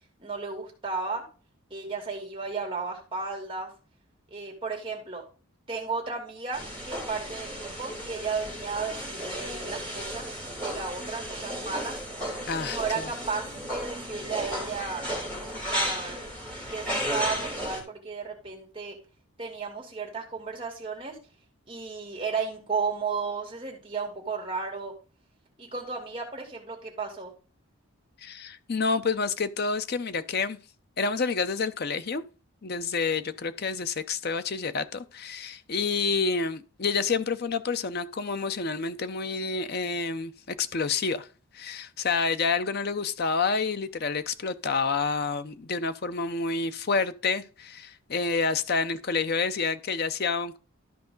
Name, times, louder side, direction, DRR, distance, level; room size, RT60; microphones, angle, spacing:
voice 1, 0.2-1.2 1.7-3.7 4.3-5.3 5.7-10.3 10.6-12.0 12.6-15.0 15.3-16.2 16.7-19.0 19.4-21.2 21.7-25.0 25.6-27.3, right 4 dB, 25° right, 2.7 m, -34 dB
sound 1, 6.5-17.8, equal, 5° left, 3.5 m, -34 dB
voice 2, 12.5-13.1 28.2-30.6 31.0-32.2 32.6-41.3 41.5-50.6, left 4 dB, 45° left, 0.6 m, -28 dB
13.0 x 4.8 x 3.9 m
head